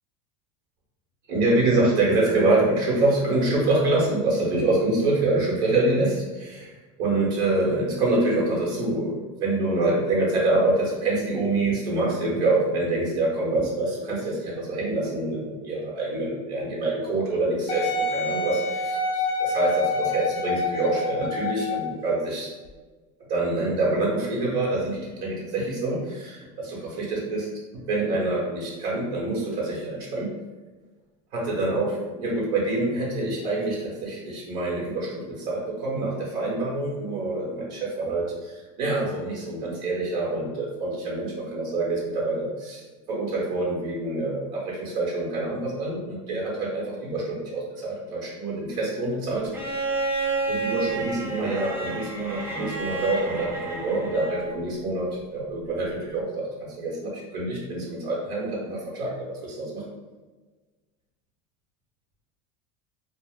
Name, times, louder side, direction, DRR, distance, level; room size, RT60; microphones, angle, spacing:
voice 1, 1.3-6.7 7.0-22.5 23.3-27.5 27.9-30.3 31.3-42.8 43.1-49.5 50.5-56.4 56.8-59.8, right 2 dB, 50° right, -5 dB, 1.0 m, -26 dB
Wind instrument woodwind instrument, 17.7-22.0 22.7-22.8, left 3 dB, 50° left, 0.5 m, -27 dB
Bowed string instrument, 49.5-54.6 56.0-56.1, right 3 dB, 10° right, 0.3 m, -30 dB
2.4 x 2.1 x 3.5 m, 1.3 s
supercardioid pair, 145°, 18 cm